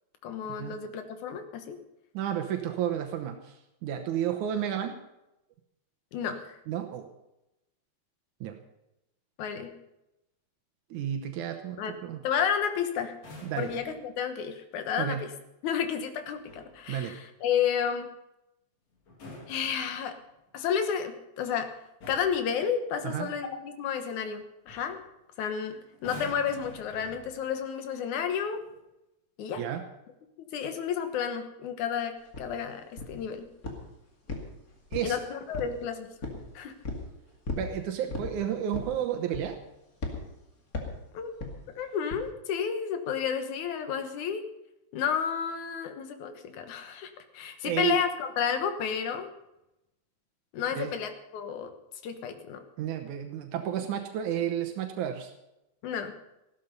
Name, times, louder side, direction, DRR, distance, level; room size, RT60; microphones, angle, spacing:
voice 1, 0.2-1.8 6.1-6.6 9.4-9.7 11.8-12.0 12.2-13.2 13.6-15.3 15.6-18.1 19.5-20.2 20.5-21.7 22.1-25.0 25.4-28.6 29.4-29.6 30.5-33.5 35.0-36.1 36.5-36.8 41.1-41.3 41.8-44.4 44.9-49.3 50.5-51.7 52.0-52.6 55.8-56.1, left 7 dB, 85° left, 7 dB, 2.7 m, -31 dB
voice 2, 2.1-3.5 3.8-5.0 6.7-7.1 8.4-8.5 10.9-12.2 13.4-13.7 15.0-15.2 16.9-17.1 23.0-23.3 29.6-29.8 34.9-35.2 37.6-39.6 47.6-47.9 50.7-50.9 52.8-55.3, right 10 dB, 85° right, 5 dB, 2.4 m, -31 dB
sound 1, 13.1-14.1 16.2-16.8 19.0-20.3 21.4-21.6 22.0-22.5 24.2-24.4 24.7-25.0 25.9-27.6 28.5-28.8, left 2 dB, 65° left, 4.2 m, -47 dB
sound 2, 32.3-32.5 33.0-33.3 33.6-33.9 34.3-35.2 35.5-35.8 36.2-36.4 36.8-37.1 37.4-37.7 38.1-38.3 38.7-39.0 39.3-39.6 40.0-40.2 40.7-41.0 41.4-41.6 42.1-42.3, left 3 dB, 30° left, 2.4 m, -35 dB
15.5 x 12.5 x 5.3 m, 0.91 s
omnidirectional pair, 3.4 m